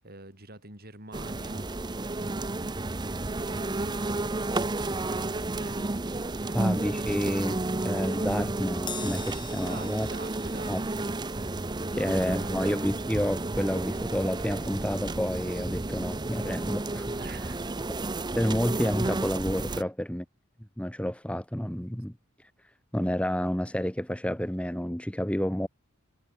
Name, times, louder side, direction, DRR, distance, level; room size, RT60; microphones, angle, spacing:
voice 1, 0.0-2.9 3.2-6.8 9.6-10.8 11.9-12.6 17.1-17.9 19.7-19.9, right 2 dB, 45° right, 7.3 m, -47 dB
sound 1, 1.1-19.8, right 2 dB, 20° right, 0.7 m, -32 dB
voice 2, 6.5-10.1 10.7-10.8 12.0-17.1 18.3-20.2 20.8-22.1 22.9-25.7, equal, 5° left, 1.4 m, -30 dB
Crash cymbal, 8.9-15.5 15.8-16.1 17.1-17.2, left 6 dB, 20° left, 2.9 m, -47 dB
head